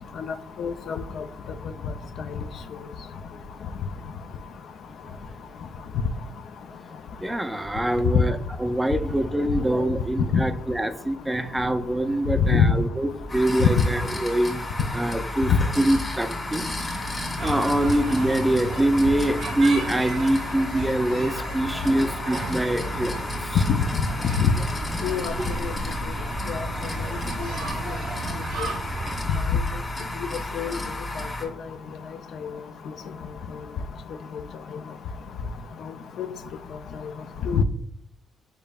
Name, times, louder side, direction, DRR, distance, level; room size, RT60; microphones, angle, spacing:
voice 1, 0.6-1.0 10.3-10.4 12.5-12.7 13.6-13.7 23.6-23.8 24.4-24.5 25.0-25.3 25.6-25.7 28.6-28.7 29.5-29.6 30.5-30.8 36.2-36.3 37.5-37.6, left 7 dB, 65° left, 9 dB, 0.4 m, -21 dB
voice 2, 7.2-14.6 14.9-17.0 17.4-23.6, right 1 dB, 10° right, 9 dB, 0.4 m, -24 dB
sound 1, 13.3-31.4, left 1 dB, 25° left, 1.1 m, -32 dB
sound 2, 17.4-29.3, right 4 dB, 90° right, 1.1 m, -35 dB
5.2 x 4.2 x 2.3 m, 0.67 s
cardioid pair, 90°, 0 cm